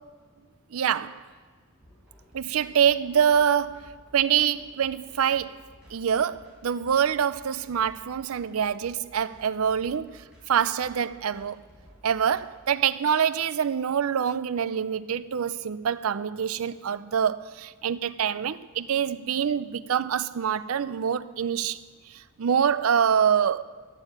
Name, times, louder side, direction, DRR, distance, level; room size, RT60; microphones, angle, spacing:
voice 1, 0.7-1.2 2.3-5.6 5.9-10.1 10.5-11.6 12.0-21.8 22.4-23.6, right 8 dB, 85° right, 0.5 m, -25 dB
sound 1, 1.8-12.5, equal, 5° right, 5.1 m, -55 dB
11.5 x 9.1 x 9.0 m
head